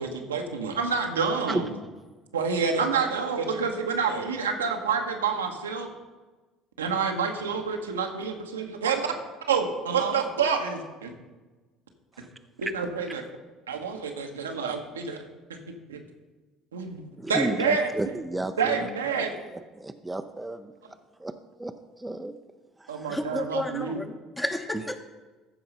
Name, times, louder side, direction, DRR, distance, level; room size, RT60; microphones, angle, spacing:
voice 1, 0.0-1.7 2.3-5.9 6.8-9.0 9.5-11.1 12.6-13.2 13.7-15.2 15.5-15.6 15.9-16.0 16.7-17.9 18.6-19.3 22.9-24.0, right 5 dB, 90° right, 3 dB, 1.0 m, -28 dB
voice 2, 17.2-19.2 19.5-20.7 21.2-21.3 21.6-21.7 22.0-22.4 22.8-23.2, right 2 dB, 10° right, 7 dB, 0.6 m, -32 dB
voice 3, 23.1-25.0, left 1 dB, 15° left, 7 dB, 1.1 m, -32 dB
14.0 x 4.8 x 5.4 m, 1.2 s
hypercardioid pair, 65°, 0 cm